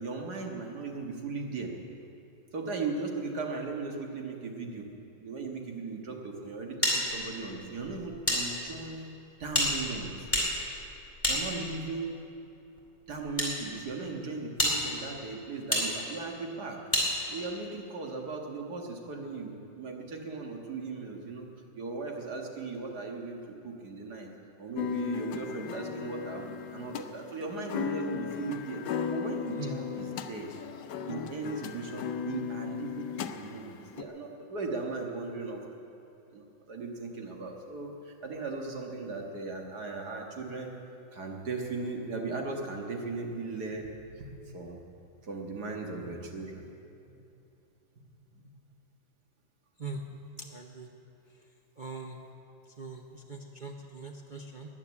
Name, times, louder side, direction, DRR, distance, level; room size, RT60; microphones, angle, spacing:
voice 1, 0.0-1.7 2.5-4.9 5.2-9.1 9.4-10.1 11.3-12.1 13.1-16.8 17.3-21.5 21.7-24.3 24.6-28.8 29.1-30.5 31.1-35.6 36.3-40.7 41.1-43.9 44.2-44.8 45.2-46.7 47.1-47.2 48.3-48.5, right 3 dB, 55° right, 1 dB, 2.1 m, -37 dB
sound 1, 6.8-8.4 8.7-8.8 9.5-12.0 12.8-13.5 14.1-14.2 14.6-14.7 15.7-15.8 16.9-17.1, left 1 dB, 5° left, 3.3 m, -29 dB
sound 2, 24.7-34.0, left 7 dB, 65° left, 1.2 m, -36 dB
voice 2, 50.4-50.9 51.8-52.2 52.8-54.7, right 3 dB, 70° right, 2 dB, 0.4 m, -41 dB
14.5 x 9.8 x 9.6 m, 2.8 s
omnidirectional pair, 2.2 m